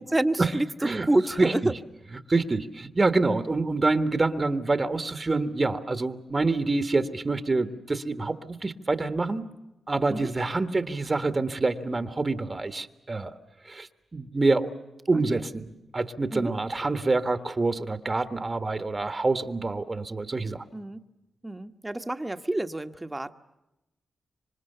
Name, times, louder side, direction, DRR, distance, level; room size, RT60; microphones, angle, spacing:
voice 1, 0.1-0.7 1.1-1.7 10.1-10.3 15.1-15.4 16.3-16.5 20.7-21.0 21.4-23.3, right 1 dB, 15° right, 8 dB, 1.4 m, -28 dB
voice 2, 1.4-1.7 2.3-9.5 9.9-13.3 13.6-14.7 15.1-20.6, right 3 dB, 30° right, 9 dB, 1.5 m, -26 dB
27.0 x 25.0 x 6.8 m, 0.95 s
cardioid pair, 70°, 0 cm